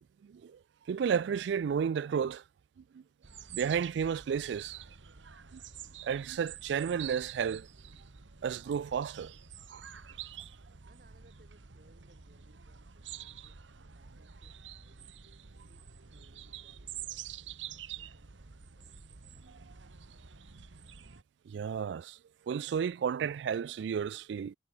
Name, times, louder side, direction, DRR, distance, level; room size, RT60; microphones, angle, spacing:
voice 1, 0.3-0.6 0.9-2.4 2.9-3.0 3.5-4.8 5.5-5.6 6.0-7.7 8.4-9.3 9.7-9.9 21.5-22.2 22.5-24.6, right 7 dB, 70° right, 0.3 m, -32 dB
Birdsong Furzey Gardens, 3.2-21.2, right 9 dB, 85° right, 1.1 m, -47 dB
voice 2, 10.9-13.6 13.9-15.2 15.7-19.0, right 1 dB, 50° right, 3.3 m, -67 dB
head